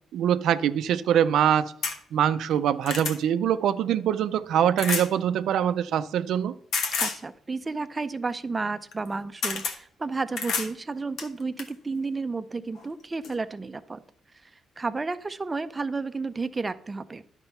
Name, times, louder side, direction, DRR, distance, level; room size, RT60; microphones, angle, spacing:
voice 1, 0.1-1.7 2.1-6.5, right 9 dB, 75° right, 0.4 m, -23 dB
sound 1, 1.8-2.0 2.5-3.2 4.8-5.1 6.7-7.2 8.9-9.1 9.4-9.8 10.4-10.7 11.2-11.7 12.7-12.9 13.2-13.3, left 5 dB, 75° left, 1.1 m, -29 dB
voice 2, 7.0-14.0 14.4-14.5 14.8-17.2, right 3 dB, 25° right, 0.5 m, -32 dB
10.5 x 4.4 x 5.5 m
cardioid pair, 90°, 0 cm